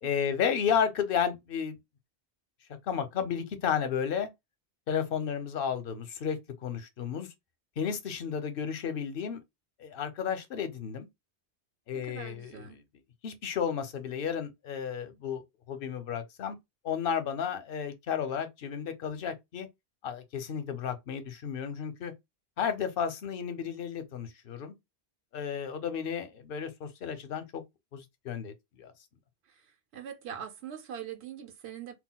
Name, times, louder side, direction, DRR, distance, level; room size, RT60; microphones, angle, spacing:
voice 1, 0.0-1.8 2.9-4.3 4.9-7.3 7.8-9.4 9.8-11.1 11.9-12.8 13.2-15.4 15.7-16.6 16.8-19.7 20.0-22.1 22.6-24.7 25.3-27.6 27.9-28.9, left 7 dB, 60° left, 0.8 m, -32 dB
voice 2, 11.9-12.8 29.5-29.6 29.9-31.9, right 8 dB, 80° right, 0.9 m, -42 dB
2.3 x 2.2 x 3.8 m
omnidirectional pair, 1.1 m